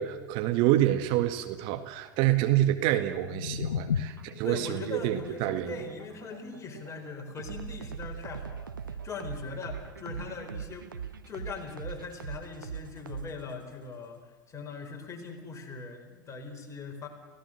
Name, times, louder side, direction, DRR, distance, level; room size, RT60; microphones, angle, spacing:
voice 1, 0.0-5.7, right 13 dB, 50° right, 8 dB, 1.8 m, -27 dB
sound 1, 2.8-8.8, left 7 dB, 75° left, 0.8 m, -38 dB
sound 2, 4.0-13.7, right 7 dB, 80° right, 1.0 m, -41 dB
voice 2, 4.4-17.1, left 4 dB, 30° left, 4 dB, 4.6 m, -40 dB
29.5 x 16.5 x 6.6 m, 1.2 s
figure-of-eight pair, 75°, 11 cm